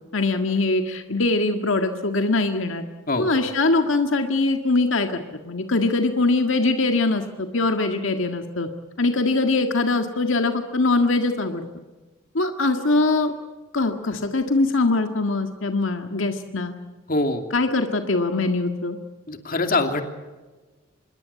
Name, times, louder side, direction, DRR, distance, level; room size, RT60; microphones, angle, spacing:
voice 1, 0.1-2.8 3.2-8.7 9.0-11.7 12.3-13.3 13.7-16.7 17.5-19.0, left 2 dB, 80° left, 6 dB, 1.8 m, -22 dB
voice 2, 17.1-17.4 19.3-20.0, left 2 dB, 45° left, 6 dB, 2.7 m, -23 dB
26.0 x 21.5 x 8.4 m, 1.2 s
head